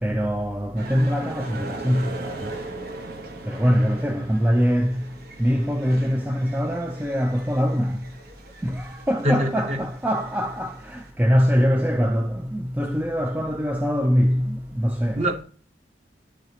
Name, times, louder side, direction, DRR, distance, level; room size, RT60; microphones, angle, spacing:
voice 1, 0.0-2.5 3.5-5.0 5.4-8.0 8.6-15.2, equal, 10° right, 0.4 m, -23 dB
sound 1, 0.8-11.1, right 2 dB, 60° right, 1.0 m, -39 dB
voice 2, 9.2-9.8 15.1-15.4, equal, 40° right, 1.3 m, -23 dB
11.0 x 3.9 x 2.8 m
head